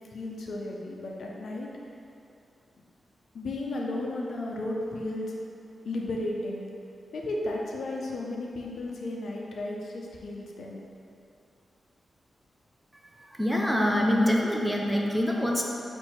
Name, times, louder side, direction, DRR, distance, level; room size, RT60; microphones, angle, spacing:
voice 1, 0.1-1.7 3.3-5.4 5.8-6.7 7.1-10.8, left 2 dB, 70° left, -2 dB, 0.6 m, -34 dB
voice 2, 13.1-15.6, left 1 dB, ahead, -1 dB, 0.4 m, -25 dB
4.5 x 2.6 x 4.4 m, 2.7 s
wide cardioid pair, 100°, 0 cm